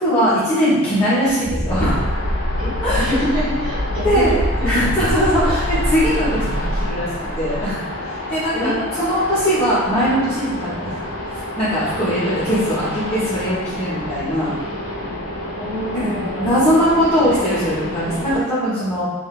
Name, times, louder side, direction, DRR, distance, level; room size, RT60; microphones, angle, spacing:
voice 1, 0.0-2.1 2.8-3.1 4.0-4.4 4.6-10.9 11.3-14.6 16.1-19.0, equal, 25° left, -14 dB, 0.9 m, -20 dB
sound 1, 1.4-7.7, equal, 70° right, 1.4 m, -24 dB
sound 2, 1.7-18.4, left 1 dB, 80° left, 1.1 m, -29 dB
voice 2, 2.6-4.9 8.5-9.2 15.6-16.8, equal, 20° right, -13 dB, 0.9 m, -26 dB
3.7 x 2.4 x 2.3 m, 1.3 s
head